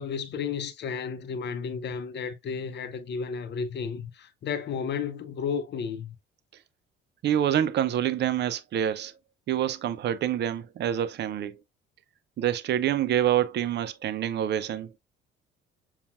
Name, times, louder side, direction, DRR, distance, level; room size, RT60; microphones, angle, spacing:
voice 1, 0.0-6.1, left 6 dB, 35° left, 0.8 m, -33 dB
voice 2, 7.2-9.1 9.5-11.6 12.4-15.0, right 10 dB, 35° right, 0.6 m, -26 dB
6.9 x 2.4 x 2.5 m
figure-of-eight pair, 50°, 29 cm